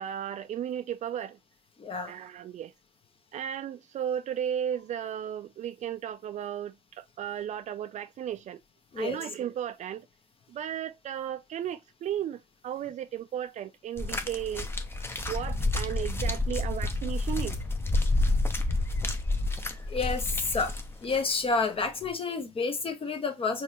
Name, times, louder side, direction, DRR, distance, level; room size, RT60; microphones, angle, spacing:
voice 1, 0.0-1.4 2.1-2.7 3.3-8.6 9.0-10.1 10.5-14.7 15.3-17.6, right 10 dB, 50° right, 0.4 m, -35 dB
voice 2, 1.8-2.1 8.9-9.2 15.1-15.3 19.9-20.7 21.0-23.6, left 4 dB, 35° left, 1.1 m, -30 dB
sound 1, 14.0-21.2 22.0-22.1, left 2 dB, 15° left, 0.8 m, -29 dB
4.4 x 3.0 x 3.0 m
hypercardioid pair, 60°, 16 cm